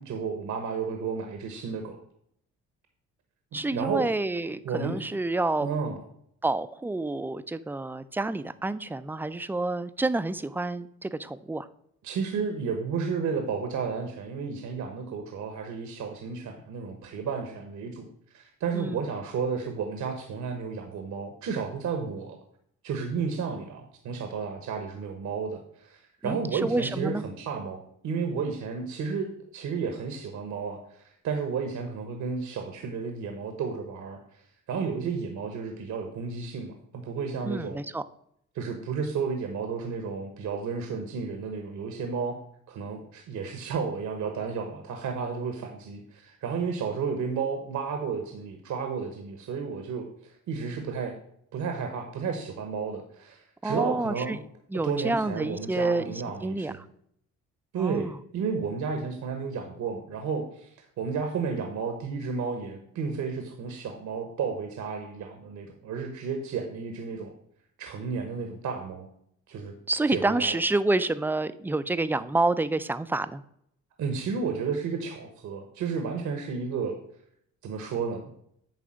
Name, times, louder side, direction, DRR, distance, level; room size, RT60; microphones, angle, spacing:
voice 1, 0.0-2.0 3.7-4.1 4.6-4.9 5.6-6.0 12.0-18.1 18.3-22.4 22.8-34.4 34.7-37.8 38.5-42.4 42.7-51.1 51.5-54.4 54.8-56.8 57.7-60.7 61.0-67.3 67.8-69.1 69.5-69.7 70.1-70.6 74.0-77.0 77.6-78.3, right 5 dB, 70° right, 5 dB, 1.1 m, -32 dB
voice 2, 3.5-5.7 6.4-11.7 18.7-19.0 26.2-27.2 37.4-38.0 53.6-54.4 54.7-56.7 57.8-58.2 69.9-73.4, right 2 dB, 5° right, 13 dB, 0.4 m, -28 dB
8.8 x 3.4 x 6.2 m, 0.70 s
cardioid pair, 90°, 30 cm